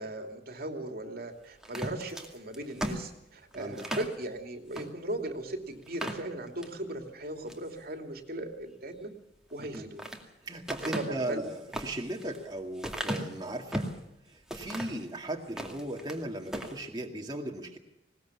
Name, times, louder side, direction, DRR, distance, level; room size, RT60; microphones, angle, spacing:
voice 1, 0.0-9.1 9.5-10.0 10.9-11.4, right 1 dB, 60° right, 5 dB, 2.7 m, -38 dB
sound 1, 1.6-4.1 4.7-4.9 5.3-5.4 5.8-6.8 7.2-7.7 9.5-10.2 10.7-14.0 14.5-15.0 15.4-16.2 16.5-16.8, equal, 5° right, 2.3 m, -37 dB
voice 2, 3.6-4.0 9.6-9.9 10.4-13.9 14.3-17.8, right 1 dB, 25° right, 0 dB, 2.2 m, -37 dB
20.0 x 19.0 x 7.2 m, 0.85 s
head